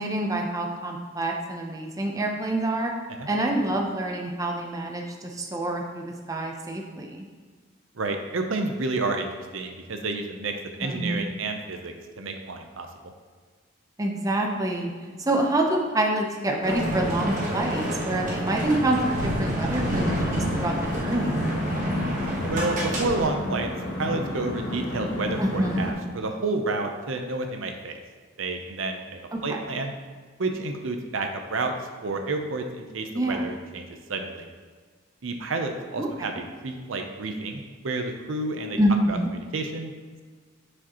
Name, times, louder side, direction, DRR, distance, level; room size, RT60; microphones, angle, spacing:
voice 1, 0.0-2.9 3.3-7.3 10.8-11.3 14.0-14.9 15.2-21.5 25.4-25.8 29.3-29.6 33.1-33.4 36.0-36.4 38.8-39.3, right 1 dB, 15° right, 1 dB, 0.6 m, -27 dB
voice 2, 8.0-10.5 10.8-13.1 22.5-28.0 28.4-29.9 30.4-31.7 32.0-34.5 35.2-38.8 39.1-39.9, right 3 dB, 75° right, 5 dB, 0.6 m, -30 dB
sound 1, 16.6-23.3, equal, 40° right, 1.3 m, -28 dB
sound 2, 20.0-25.9, left 1 dB, 60° left, 1.1 m, -32 dB
7.3 x 6.3 x 3.0 m, 1.5 s
head